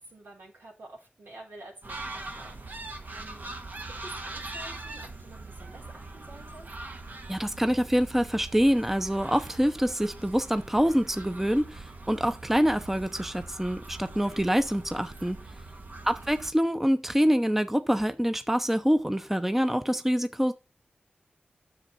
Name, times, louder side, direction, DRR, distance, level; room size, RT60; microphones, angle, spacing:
voice 1, 0.0-3.5 4.0-6.7 16.2-16.4, right 2 dB, 80° right, 4.4 m, -49 dB
sound 1, 1.8-16.5, right 2 dB, 55° right, 1.4 m, -42 dB
voice 2, 7.3-15.4 16.0-20.5, equal, 10° right, 0.7 m, -25 dB
9.9 x 7.1 x 4.2 m
wide cardioid pair, 65°, 4 cm